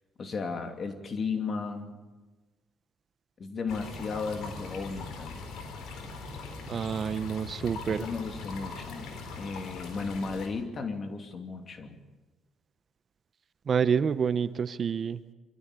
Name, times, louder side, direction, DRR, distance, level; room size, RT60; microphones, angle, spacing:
voice 1, 0.2-2.0 3.4-5.4 7.8-12.0, left 4 dB, 45° left, 5 dB, 2.8 m, -35 dB
sound 1, 3.7-10.5, left 4 dB, 80° left, 4.2 m, -41 dB
voice 2, 6.7-8.1 13.7-15.2, right 7 dB, 50° right, 14 dB, 0.8 m, -28 dB
24.5 x 14.0 x 8.3 m, 1.3 s
cardioid pair, 90°, 0 cm